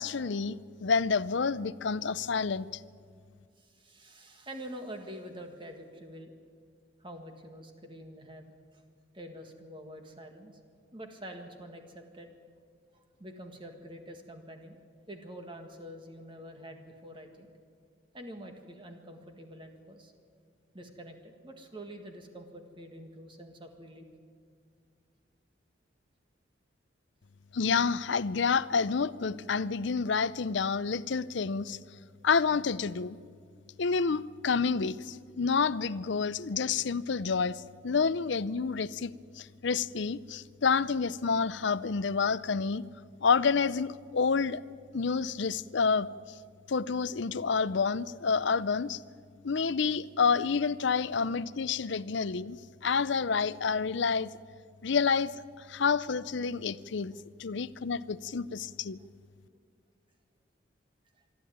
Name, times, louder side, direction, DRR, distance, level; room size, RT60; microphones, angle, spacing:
voice 1, 0.0-2.7 27.5-31.8 32.2-33.2 33.8-42.8 43.2-44.6 44.9-46.1 46.7-49.0 49.4-54.3 54.8-57.1 57.4-59.0, left 5 dB, 65° left, 17 dB, 0.6 m, -29 dB
voice 2, 3.6-6.3 7.0-8.8 9.1-10.6 10.9-12.3 12.9-14.8 15.1-17.5 18.1-20.1 20.7-24.1 61.2-61.3, equal, 25° right, 4 dB, 1.8 m, -46 dB
26.0 x 12.0 x 9.4 m, 2.1 s
head